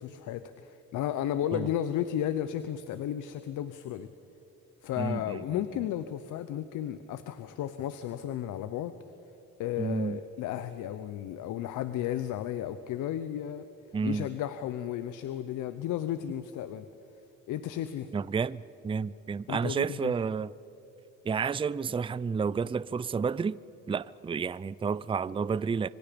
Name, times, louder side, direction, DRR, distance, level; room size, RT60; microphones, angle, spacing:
voice 1, 0.0-4.1 4.8-9.0 9.6-13.7 14.0-16.9 17.5-18.1 19.5-20.1, left 11 dB, 90° left, 0.8 m, -33 dB
voice 2, 5.0-5.6 9.8-10.2 13.9-14.3 18.1-20.5 21.2-23.6 23.9-25.9, right 5 dB, 20° right, 0.4 m, -31 dB
26.0 x 24.5 x 5.2 m
cardioid pair, 90°, 30 cm